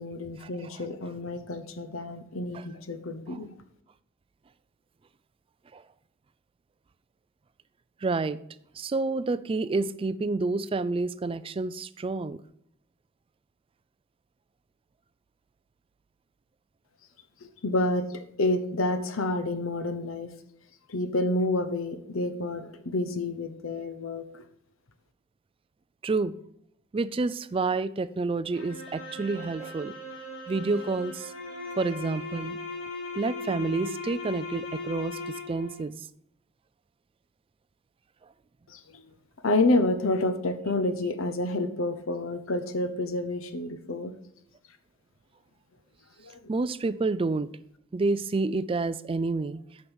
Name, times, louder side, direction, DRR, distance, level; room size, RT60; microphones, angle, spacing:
voice 1, 0.0-3.5 17.4-20.3 20.9-24.4 38.7-39.0 39.4-44.1 46.2-46.4, left 2 dB, 75° left, 0.9 m, -29 dB
voice 2, 8.0-8.4 8.8-12.4 26.0-26.3 26.9-29.9 30.5-31.3 31.8-32.6 33.1-35.2 35.5-36.0 46.5-47.5 47.9-49.6, right 3 dB, 25° right, 0.4 m, -29 dB
sound 1, 28.5-35.8, left 2 dB, 60° left, 3.5 m, -38 dB
8.8 x 5.5 x 6.2 m
head